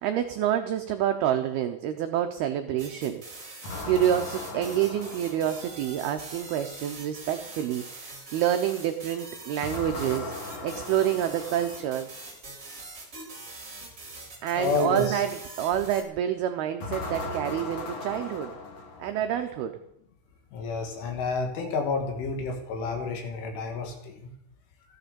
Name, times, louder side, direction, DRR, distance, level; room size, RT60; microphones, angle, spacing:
voice 1, 0.0-3.2 3.9-10.3 10.6-12.1 14.4-18.5 19.0-19.8, right 10 dB, 90° right, 6 dB, 2.2 m, -28 dB
sound 1, 2.8-16.0, right 3 dB, 15° right, 3.5 m, -43 dB
sound 2, 3.6-6.0 9.6-12.1 16.8-19.4, left 2 dB, 50° left, 2.1 m, -38 dB
voice 2, 14.6-15.2 20.5-24.3, left 4 dB, 75° left, 3 dB, 4.8 m, -30 dB
16.0 x 11.5 x 7.0 m, 0.79 s
omnidirectional pair, 5.7 m